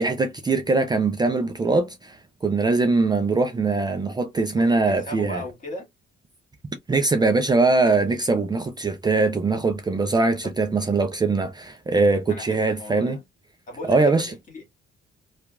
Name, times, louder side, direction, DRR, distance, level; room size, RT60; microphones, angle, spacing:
voice 1, 0.0-2.2 2.4-5.4 6.9-13.2 13.9-14.3, right 3 dB, 20° right, 0.4 m, -22 dB
voice 2, 4.6-5.9 10.4-10.5 12.3-13.2 13.7-14.7, left 1 dB, 40° left, 1.7 m, -37 dB
2.8 x 2.4 x 2.3 m
cardioid pair, 90°, 20 cm